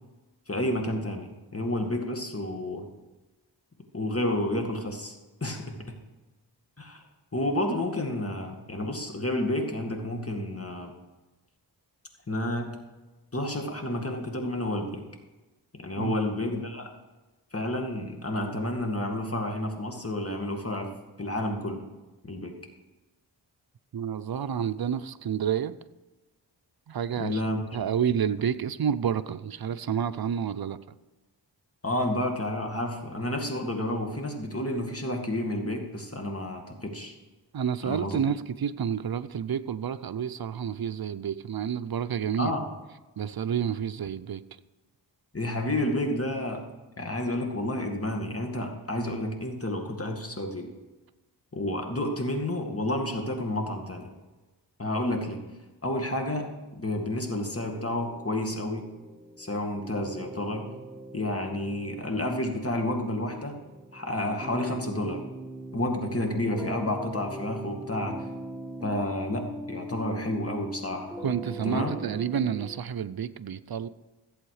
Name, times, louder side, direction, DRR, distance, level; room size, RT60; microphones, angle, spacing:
voice 1, 0.5-2.9 3.9-5.1 5.4-6.0 6.8-7.0 7.3-10.9 12.3-12.8 13.3-15.0 15.7-16.9 17.5-20.9 21.2-21.8 22.2-22.5 27.2-27.6 31.8-37.2 37.8-38.2 42.4-42.7 45.3-46.7 47.0-50.7 51.5-54.1 54.8-55.4 55.8-58.9 59.4-60.7 61.1-63.6 63.9-65.3 65.7-68.2 68.8-71.2 71.6-71.9, left 1 dB, 30° left, 2.2 m, -30 dB
voice 2, 23.9-25.8 26.9-27.4 27.7-30.8 37.5-42.5 43.2-44.6 71.2-73.9, right 8 dB, 55° right, 0.6 m, -29 dB
sound 1, 57.5-72.8, right 1 dB, 5° right, 1.0 m, -41 dB
15.0 x 7.9 x 4.9 m
cardioid pair, 50°, 45 cm